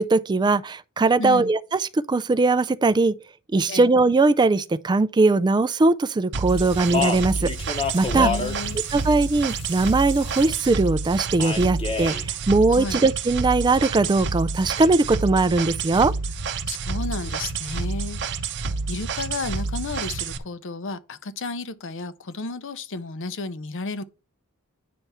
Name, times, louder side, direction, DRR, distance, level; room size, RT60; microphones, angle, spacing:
voice 1, 0.0-3.2 3.5-7.5 7.9-8.3 8.9-16.1, right 3 dB, 20° right, 0.3 m, -20 dB
voice 2, 1.2-1.5 3.7-3.9 8.1-8.8 12.7-13.0 16.7-18.5 18.9-24.0, left 3 dB, 55° left, 0.7 m, -32 dB
sound 1, 6.3-20.4, right 4 dB, 50° right, 0.7 m, -29 dB
Speech, 6.5-10.7 11.4-12.3, left 4 dB, 25° left, 0.9 m, -30 dB
9.4 x 3.5 x 5.5 m
head